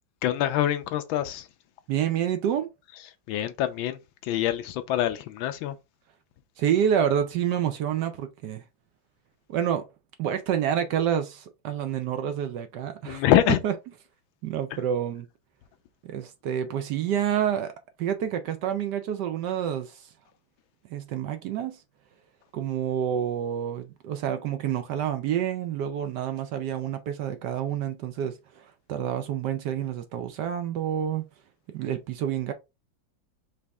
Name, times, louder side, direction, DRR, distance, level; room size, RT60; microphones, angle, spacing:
voice 1, 0.2-1.5 3.3-5.8 13.0-13.6, left 12 dB, 85° left, 1.4 m, -25 dB
voice 2, 1.9-2.7 6.6-8.6 9.5-9.9 10.2-13.2 13.6-13.7 14.4-15.3 16.0-17.7 18.0-20.1 20.9-21.8 22.5-31.2 31.7-32.5, right 9 dB, 70° right, 1.1 m, -28 dB
5.2 x 2.8 x 3.5 m
omnidirectional pair, 2.1 m